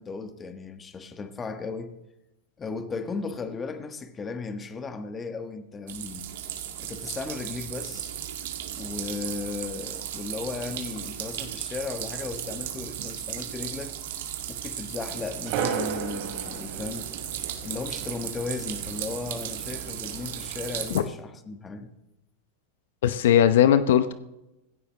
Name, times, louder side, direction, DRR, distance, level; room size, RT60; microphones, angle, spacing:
voice 1, 0.0-1.9 2.6-6.3 6.8-8.1 8.8-13.9 14.5-17.1 17.6-21.9, left 4 dB, 20° left, 1.4 m, -36 dB
sound 1, 5.9-21.0, right 10 dB, 75° right, 2.0 m, -36 dB
sound 2, 15.1-20.9, right 6 dB, 55° right, 3.3 m, -36 dB
voice 2, 23.0-24.1, left 10 dB, 75° left, 0.8 m, -19 dB
16.5 x 16.0 x 3.2 m
hypercardioid pair, 115°, 0 cm